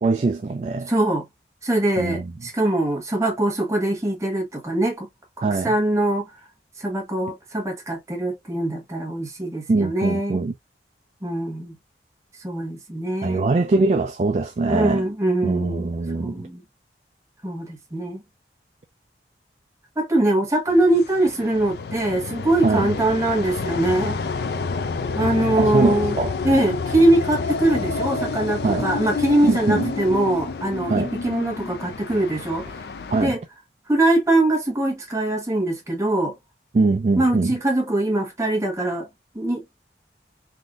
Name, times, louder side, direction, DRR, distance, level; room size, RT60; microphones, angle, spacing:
voice 1, 0.0-0.9 2.0-2.3 5.4-5.7 9.7-10.5 13.2-15.0 15.4-16.3 22.6-22.9 25.6-26.3 28.6-28.9 29.5-29.8 30.9-31.1 33.1-33.4 36.7-37.6, right 3 dB, 40° right, 0.3 m, -22 dB
voice 2, 0.9-1.2 1.6-5.1 5.4-6.3 6.8-10.4 11.2-11.8 12.4-13.5 14.6-15.9 16.2-16.6 17.4-18.2 20.0-24.2 25.1-26.2 26.4-32.7 33.1-33.4 33.9-36.3 37.2-39.1 39.3-39.6, right 1 dB, 15° right, 1.1 m, -22 dB
sound 1, 20.7-33.3, left 4 dB, 60° left, 0.4 m, -29 dB
3.6 x 2.6 x 2.3 m
head